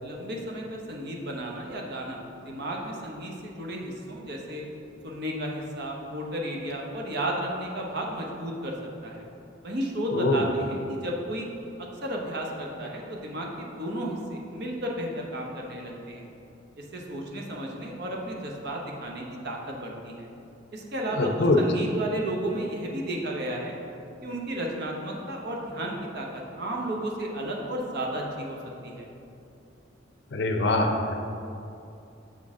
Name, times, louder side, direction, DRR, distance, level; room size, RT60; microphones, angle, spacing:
voice 1, 0.0-4.6 5.0-8.7 9.0-9.2 9.6-11.5 11.8-16.3 16.8-20.3 20.7-23.8 24.2-28.6 28.8-29.0, right 1 dB, 55° right, -1 dB, 0.8 m, -33 dB
voice 2, 10.1-10.4 21.2-21.6 30.3-31.3, left 2 dB, 60° left, 3 dB, 0.5 m, -23 dB
7.4 x 3.8 x 3.6 m, 2.7 s
head